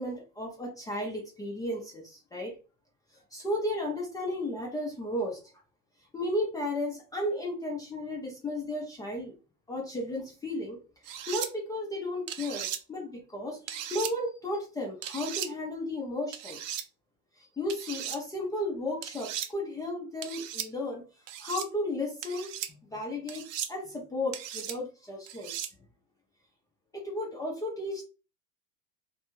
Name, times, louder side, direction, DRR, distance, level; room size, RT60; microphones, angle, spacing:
voice 1, 0.0-2.6 3.3-5.4 6.1-9.3 9.7-10.8 11.0-16.6 17.4-21.0 21.4-22.5 22.8-25.5 26.9-28.0, left 1 dB, 10° left, 0.4 m, -34 dB
sound 1, 11.0-11.5 12.3-12.8 13.7-14.1 15.0-15.5 16.3-16.8 17.7-18.2 19.0-19.5 20.2-20.7 21.3-21.7 22.2-22.7 23.3-23.7 24.3-24.8 25.3-25.7, right 10 dB, 85° right, 0.6 m, -37 dB
2.6 x 2.2 x 2.9 m
supercardioid pair, 140°, 38 cm